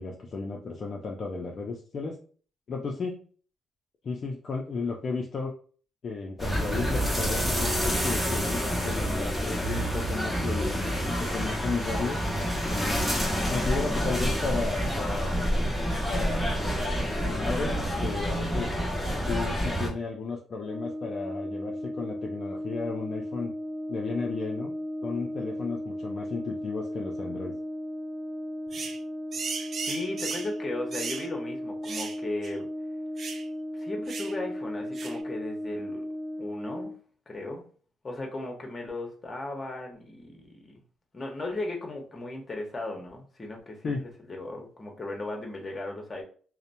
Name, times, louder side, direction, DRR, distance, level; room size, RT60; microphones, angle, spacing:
voice 1, 0.0-2.2 2.7-3.2 4.0-5.5 6.0-12.2 12.7-15.4 16.1-16.7 17.2-18.7 19.3-23.5 23.9-24.7 25.0-27.6 43.8-44.0, left 4 dB, 50° left, 0 dB, 0.4 m, -34 dB
sound 1, 6.4-19.9, equal, ahead, 1.0 m, -28 dB
Brass instrument, 20.6-37.0, equal, 35° right, 0.8 m, -36 dB
sound 2, 28.7-29.0 29.3-30.5 30.9-31.3 31.8-32.2 32.4-32.5 33.2-33.4 34.1-34.3 34.9-35.2, right 5 dB, 50° right, 0.3 m, -36 dB
voice 2, 29.9-32.7 33.7-36.1 36.4-36.9 37.3-37.7 38.0-40.8 41.1-43.9 44.3-46.2, left 2 dB, 30° left, 1 dB, 0.9 m, -36 dB
2.8 x 2.0 x 2.6 m, 0.42 s
cardioid pair, 90°, 0 cm